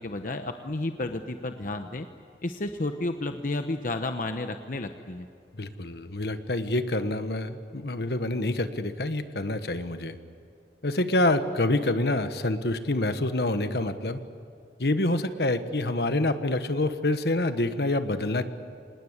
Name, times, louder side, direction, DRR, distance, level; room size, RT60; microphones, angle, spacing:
voice 1, 0.0-2.1 2.4-5.3, left 2 dB, 50° left, 7 dB, 0.9 m, -32 dB
voice 2, 5.6-10.2 10.8-14.2 14.8-18.4, left 2 dB, 65° left, 10 dB, 1.3 m, -27 dB
26.0 x 20.0 x 8.1 m, 2.5 s
head